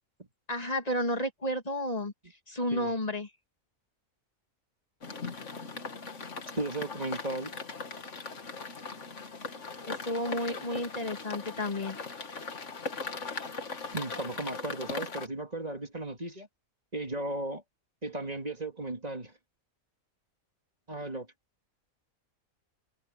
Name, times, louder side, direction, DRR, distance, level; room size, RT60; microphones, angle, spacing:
voice 1, 0.5-2.1 2.5-3.3 9.9-12.0, left 1 dB, 30° left, 1.9 m, -32 dB
sound 1, 5.0-15.3, left 4 dB, 55° left, 2.0 m, -39 dB
voice 2, 6.5-7.5 13.9-16.5 16.9-17.6 18.0-19.3 20.9-21.3, right 2 dB, 30° right, 2.9 m, -35 dB
omnidirectional pair, 1.5 m